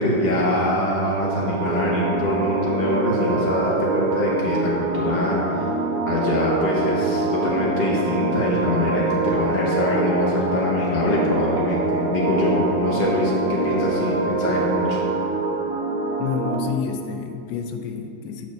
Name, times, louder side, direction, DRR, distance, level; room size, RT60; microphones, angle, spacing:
voice 1, 0.0-5.7 6.1-15.0, left 1 dB, 35° left, -5 dB, 0.9 m, -23 dB
sound 1, 1.2-16.6, right 3 dB, 60° right, 1.0 m, -25 dB
voice 2, 16.2-18.5, left 6 dB, 75° left, 6 dB, 1.2 m, -29 dB
6.8 x 4.3 x 6.3 m, 2.8 s
omnidirectional pair, 2.0 m